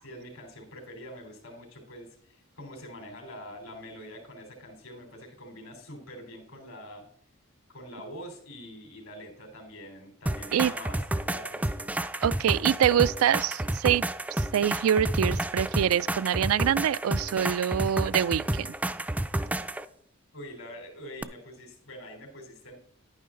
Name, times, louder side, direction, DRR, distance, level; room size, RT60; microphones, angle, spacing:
voice 1, 0.0-7.1 7.7-11.9 20.3-22.8, equal, 80° left, 3.5 m, -45 dB
sound 1, 10.3-19.9 21.2-21.3, right 1 dB, 5° right, 0.3 m, -30 dB
voice 2, 12.2-14.0 14.4-18.7, right 9 dB, 85° right, 0.3 m, -25 dB
11.0 x 9.4 x 3.7 m
head